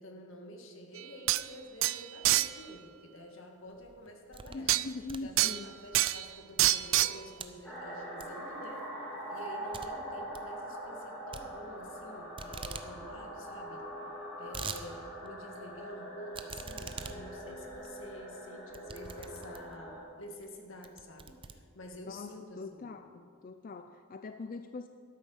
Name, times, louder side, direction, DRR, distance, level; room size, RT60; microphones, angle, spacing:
voice 1, 0.0-4.7 5.2-8.9 9.3-13.9 14.4-22.9, equal, 80° left, 3 dB, 1.8 m, -49 dB
sound 1, 1.0-1.1 1.3-1.4 1.8-2.5 4.7-4.8 5.4-5.6 5.9-6.3 6.6-7.2, right 16 dB, 75° right, 0.3 m, -26 dB
sound 2, 3.7-4.7 5.0-6.1 6.6-7.1 7.4-7.6 8.2-8.6 8.9-9.0 9.3-9.4 9.7-9.9 10.2-10.5 11.3-12.1 12.4-12.9 13.2-13.3 13.5-13.6 14.1-14.8 15.3-15.4 16.3-19.8 20.4-20.5 20.8-22.1, right 5 dB, 25° right, 0.5 m, -44 dB
voice 2, 4.5-5.7 22.1-24.9, left 3 dB, 45° left, 8 dB, 0.4 m, -42 dB
sound 3, 7.6-20.0, right 1 dB, 5° left, 3.3 m, -43 dB
12.5 x 8.6 x 6.4 m, 2.1 s
head